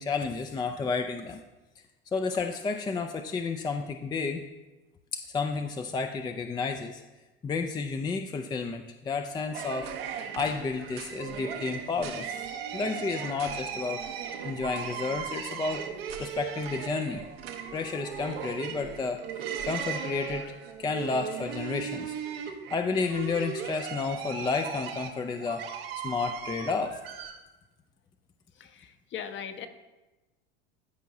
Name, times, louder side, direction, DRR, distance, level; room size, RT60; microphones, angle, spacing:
voice 1, 0.0-1.4 2.1-4.4 5.1-7.0 7.4-9.9 10.3-12.4 12.7-15.8 16.2-17.2 17.7-19.2 19.6-20.4 20.8-22.1 22.7-25.7 26.0-27.0, left 4 dB, 15° left, 6 dB, 0.4 m, -31 dB
sound 1, 9.5-27.3, right 8 dB, 80° right, 1.0 m, -37 dB
voice 2, 28.6-29.7, left 8 dB, 40° left, 8 dB, 0.8 m, -39 dB
13.0 x 4.6 x 2.7 m, 1.1 s
hypercardioid pair, 95°, 29 cm